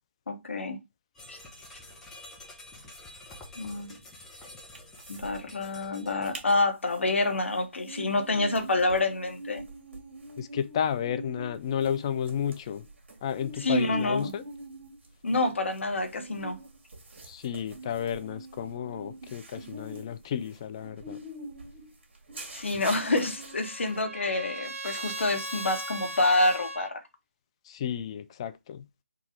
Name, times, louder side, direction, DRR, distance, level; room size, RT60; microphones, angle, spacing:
voice 1, 0.3-0.8 1.3-1.4 3.5-4.0 5.1-9.6 13.6-14.3 15.2-16.6 22.5-27.0, left 2 dB, 65° left, 1.1 m, -27 dB
sound 1, 1.1-6.6, left 1 dB, 5° left, 0.8 m, -49 dB
sound 2, 4.7-5.4 5.6-5.7 6.1-6.5 6.9-24.0, right 1 dB, 55° right, 1.5 m, -44 dB
voice 2, 10.4-12.9 13.2-14.4 17.2-21.2 27.6-28.9, left 8 dB, 25° left, 0.4 m, -32 dB
Trumpet, 23.1-26.9, right 1 dB, 80° right, 0.6 m, -38 dB
3.9 x 2.3 x 4.3 m
figure-of-eight pair, 155°, 7 cm